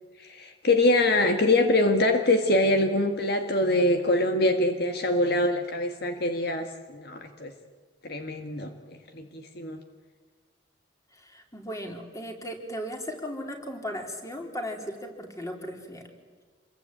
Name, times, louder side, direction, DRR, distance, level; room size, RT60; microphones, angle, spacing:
voice 1, 0.2-7.5 8.0-9.8, left 2 dB, 55° left, 6 dB, 1.8 m, -24 dB
voice 2, 11.2-16.1, equal, 15° left, 3 dB, 3.8 m, -36 dB
27.5 x 22.0 x 9.0 m, 1.5 s
head